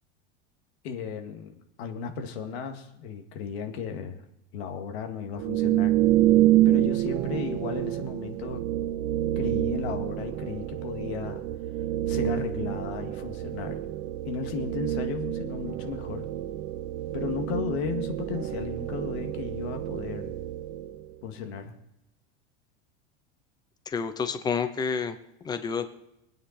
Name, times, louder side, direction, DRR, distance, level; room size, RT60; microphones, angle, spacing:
voice 1, 0.8-4.2 4.5-6.0 6.7-8.6 9.4-11.4 12.1-13.8 14.3-16.3 17.1-20.3 21.2-21.7, left 6 dB, 80° left, 5 dB, 2.2 m, -35 dB
sound 1, 5.4-21.1, right 14 dB, 50° right, 0.8 m, -27 dB
voice 2, 23.9-25.2 25.4-25.9, left 6 dB, 10° left, 10 dB, 0.8 m, -29 dB
23.0 x 9.3 x 4.3 m, 0.85 s
supercardioid pair, 170°, 32 cm